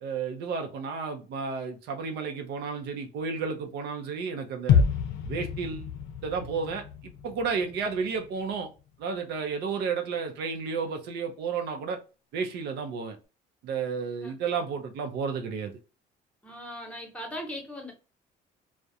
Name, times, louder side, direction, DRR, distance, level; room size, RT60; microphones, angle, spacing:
voice 1, 0.0-4.8 5.3-5.9 6.2-6.8 7.2-8.7 9.0-12.0 12.3-13.2 13.6-15.7, right 5 dB, 75° right, 0.5 m, -32 dB
sound 1, 4.7-8.6 8.9-9.0, left 6 dB, 85° left, 0.5 m, -28 dB
voice 2, 16.4-17.9, equal, 5° left, 0.9 m, -39 dB
2.3 x 2.1 x 2.6 m
cardioid pair, 110°, 17 cm